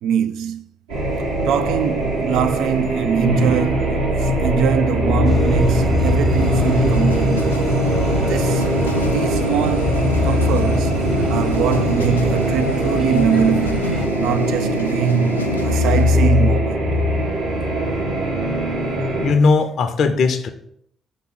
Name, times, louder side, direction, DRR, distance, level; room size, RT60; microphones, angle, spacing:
voice 1, 0.0-0.6 1.4-7.6 8.2-8.7 9.0-11.0 11.3-16.9, right 8 dB, 65° right, 0.3 m, -22 dB
sound 1, 0.9-19.3, equal, 80° right, 1.6 m, -21 dB
sound 2, 5.3-14.1, right 2 dB, 35° right, 1.0 m, -27 dB
sound 3, 6.3-16.1, left 3 dB, 90° left, 0.3 m, -28 dB
voice 2, 19.2-20.5, left 4 dB, 55° left, 0.6 m, -18 dB
5.6 x 3.5 x 5.9 m
figure-of-eight pair, 40°, 0 cm